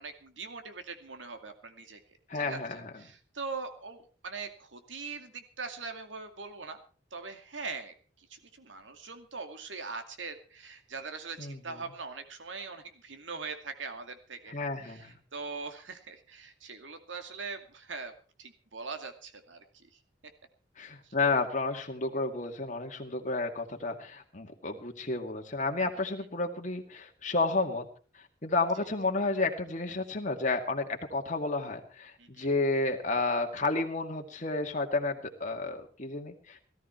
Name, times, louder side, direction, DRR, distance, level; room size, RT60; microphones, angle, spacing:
voice 1, 0.0-2.0 2.3-2.6 3.0-6.8 7.1-14.5 14.8-18.1 18.4-19.9 21.0-21.1 32.2-32.5, right 4 dB, 85° right, 6 dB, 2.4 m, -42 dB
voice 2, 2.3-2.9 11.4-11.8 14.5-15.2 20.8-27.9 28.1-36.7, left 3 dB, 40° left, 3 dB, 2.2 m, -31 dB
18.0 x 13.5 x 4.5 m, 0.39 s
head